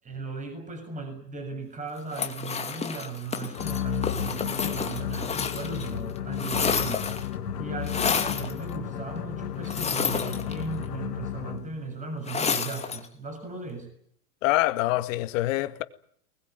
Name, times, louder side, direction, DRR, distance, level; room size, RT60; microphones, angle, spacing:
voice 1, 0.0-7.1 7.6-13.9, right 3 dB, 15° right, 7.1 m, -37 dB
sound 1, 2.1-5.9 6.2-7.3 7.9-8.5 9.6-10.8 12.3-13.1, left 6 dB, 15° left, 2.5 m, -30 dB
sound 2, 3.5-11.8, left 10 dB, 75° left, 3.3 m, -33 dB
voice 2, 14.4-15.8, left 17 dB, 55° left, 2.2 m, -25 dB
24.0 x 21.0 x 9.2 m
hypercardioid pair, 125°, 48 cm